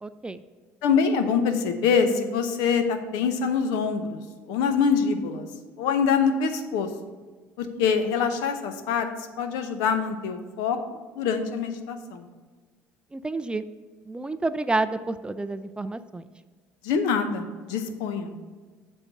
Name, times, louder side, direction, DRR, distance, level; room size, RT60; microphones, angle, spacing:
voice 1, 0.0-0.4 13.1-13.6 14.1-16.3, right 3 dB, 15° right, 12 dB, 0.3 m, -29 dB
voice 2, 0.8-4.2 4.5-5.5 5.8-6.9 7.6-9.1 9.4-10.8 11.2-12.3 16.8-18.3, left 6 dB, 75° left, 7 dB, 0.7 m, -24 dB
6.3 x 4.4 x 6.5 m, 1.4 s
hypercardioid pair, 70°, 7 cm